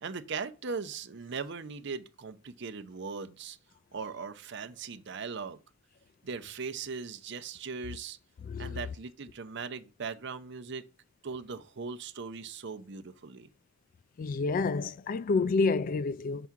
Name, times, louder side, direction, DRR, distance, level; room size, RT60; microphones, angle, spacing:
voice 1, 0.0-3.6 3.9-5.6 6.2-8.2 8.6-10.8 11.2-13.5, right 5 dB, 60° right, 0.6 m, -39 dB
voice 2, 8.4-8.8 14.2-16.5, left 4 dB, 40° left, 0.3 m, -29 dB
6.9 x 3.7 x 5.9 m
head